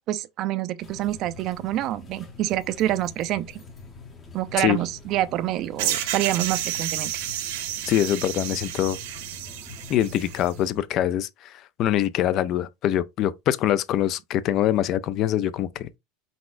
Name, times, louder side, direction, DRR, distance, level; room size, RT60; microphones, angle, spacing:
voice 1, 0.1-3.6 4.3-7.1, right 14 dB, 35° right, 0.4 m, -27 dB
sound 1, 0.8-10.6, left 3 dB, 20° left, 0.8 m, -45 dB
sound 2, 5.8-10.5, right 12 dB, 70° right, 0.8 m, -31 dB
voice 2, 7.9-9.0 9.9-11.5 11.8-16.0, left 12 dB, 35° left, 0.3 m, -24 dB
4.6 x 4.0 x 2.5 m
supercardioid pair, 165°, 0 cm